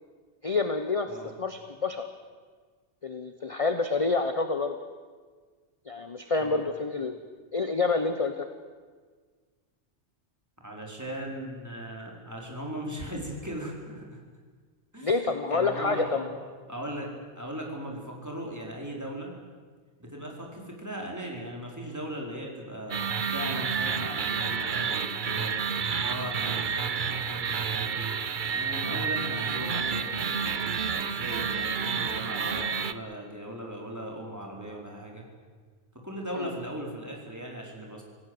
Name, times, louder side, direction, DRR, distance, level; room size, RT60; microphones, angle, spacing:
voice 1, 0.4-1.1 1.4-2.1 3.0-4.8 5.9-7.2 7.5-8.5 15.0-16.3 36.3-36.5, left 4 dB, 30° left, 7 dB, 1.1 m, -28 dB
voice 2, 10.6-14.2 14.9-16.3 16.7-19.3 20.0-23.0 23.3-25.5 26.0-28.2 28.5-35.2 35.9-38.0, equal, 15° right, -1 dB, 4.5 m, -38 dB
sound 1, 22.9-32.9, right 6 dB, 45° right, 0.9 m, -30 dB
26.5 x 17.5 x 8.0 m, 1.5 s
omnidirectional pair, 1.2 m